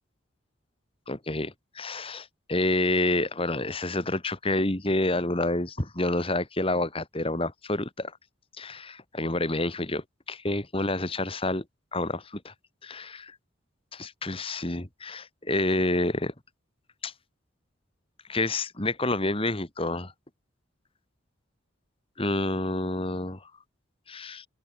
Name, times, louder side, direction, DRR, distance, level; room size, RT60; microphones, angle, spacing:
voice 1, 1.1-8.1 8.6-11.6 11.9-12.5 12.8-13.4 13.9-16.3 17.0-17.1 18.3-20.1 22.2-23.5 24.1-24.5, left 2 dB, 30° left, 2.2 m, -28 dB
open air
head